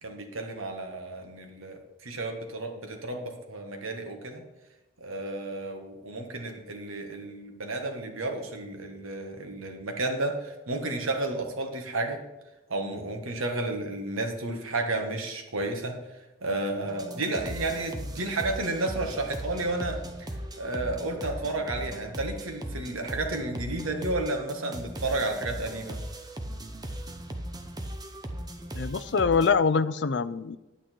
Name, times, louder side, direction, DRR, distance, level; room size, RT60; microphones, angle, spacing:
voice 1, 0.0-4.4 5.0-12.2 12.7-16.0 16.4-20.3 20.6-26.0, right 2 dB, 85° right, 4 dB, 1.7 m, -32 dB
sound 1, 16.8-29.5, right 1 dB, 20° right, 0.8 m, -38 dB
voice 2, 28.7-30.6, left 5 dB, 55° left, 13 dB, 0.5 m, -24 dB
9.9 x 8.8 x 4.6 m, 1.0 s
head